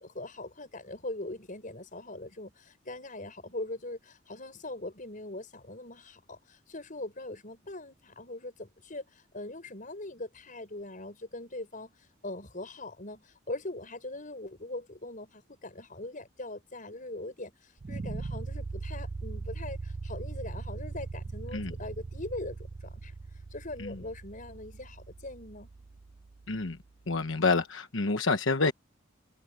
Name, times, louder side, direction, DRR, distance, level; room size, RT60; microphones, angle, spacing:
voice 1, 0.0-11.9 12.2-23.1 23.5-25.7, left 2 dB, 45° left, 5.9 m, -41 dB
sound 1, 17.8-26.8, right 3 dB, 35° right, 0.4 m, -40 dB
voice 2, 26.5-26.8 27.1-28.7, left 3 dB, 85° left, 1.1 m, -28 dB
head